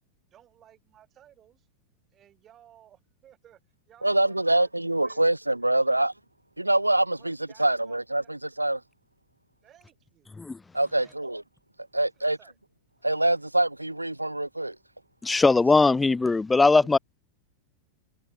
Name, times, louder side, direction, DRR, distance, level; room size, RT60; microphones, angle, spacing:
voice 1, 0.3-1.7 2.1-3.6 3.9-4.7 5.0-5.3 5.6-6.0 7.2-8.3 9.6-10.3 10.9-11.2 11.9-12.6, right 11 dB, 30° right, 7.5 m, -57 dB
voice 2, 4.0-6.1 6.6-8.8 10.7-11.4 11.9-12.4 13.0-14.8, right 1 dB, 85° right, 0.5 m, -25 dB
voice 3, 15.2-17.0, left 3 dB, 10° left, 0.3 m, -20 dB
figure-of-eight pair, 90°, 0 cm